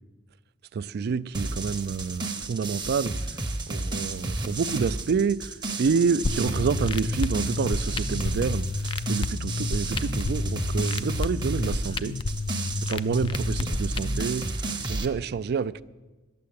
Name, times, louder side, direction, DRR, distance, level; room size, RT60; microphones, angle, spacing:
voice 1, 0.7-3.1 3.7-5.5 5.8-8.7 9.1-12.2 12.8-14.5 14.9-15.8, right 5 dB, 55° right, 0.3 m, -28 dB
sound 1, 1.3-15.1, right 2 dB, 20° right, 0.8 m, -32 dB
sound 2, 6.2-14.2, left 3 dB, 25° left, 0.3 m, -30 dB
11.5 x 7.7 x 8.6 m
head